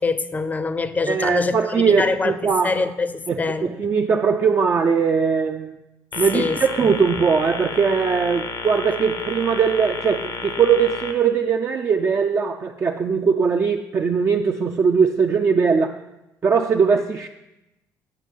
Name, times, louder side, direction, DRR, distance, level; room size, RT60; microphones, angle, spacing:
voice 1, 0.0-3.7 6.3-6.9, left 3 dB, 20° left, 0.6 m, -25 dB
voice 2, 1.1-2.8 3.3-5.8 6.2-16.0 16.4-17.3, right 6 dB, 35° right, 0.4 m, -20 dB
sound 1, 6.1-11.1, left 4 dB, 80° left, 0.9 m, -32 dB
9.0 x 5.3 x 5.5 m
cardioid pair, 90°, 7 cm